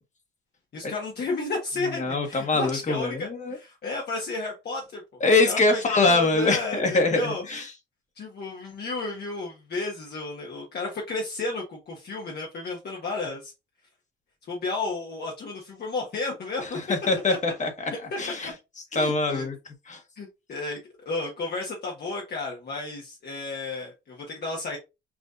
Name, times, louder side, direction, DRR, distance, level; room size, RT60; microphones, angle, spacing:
voice 1, 0.7-5.0 5.4-7.4 8.2-13.5 14.5-16.8 17.9-18.0 18.4-18.5 18.9-19.4 20.2-20.8 21.0-24.8, left 3 dB, 55° left, 1.3 m, -32 dB
voice 2, 2.0-3.6 5.2-7.6 16.9-17.9 18.2-18.5 18.9-19.5 19.9-20.0, left 3 dB, 35° left, 1.4 m, -23 dB
6.2 x 2.7 x 2.5 m
cardioid pair, 90°, 20 cm